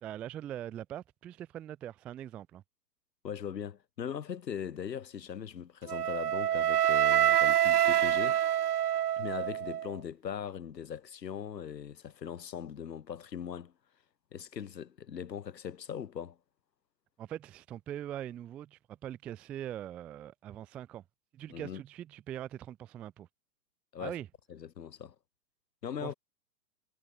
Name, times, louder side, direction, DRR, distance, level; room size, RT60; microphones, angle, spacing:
voice 1, 0.0-2.6 17.2-21.0 21.3-23.3 24.0-24.3 26.0-26.1, right 11 dB, 5° right, 0.5 m, -42 dB
voice 2, 3.2-8.4 9.2-13.7 14.3-16.4 21.5-21.8 23.9-24.2 24.5-25.2 25.8-26.1, left 8 dB, 80° left, 3.8 m, -40 dB
Wind instrument woodwind instrument, 5.9-9.9, right 11 dB, 65° right, 1.4 m, -26 dB
hypercardioid pair, 155°, 49 cm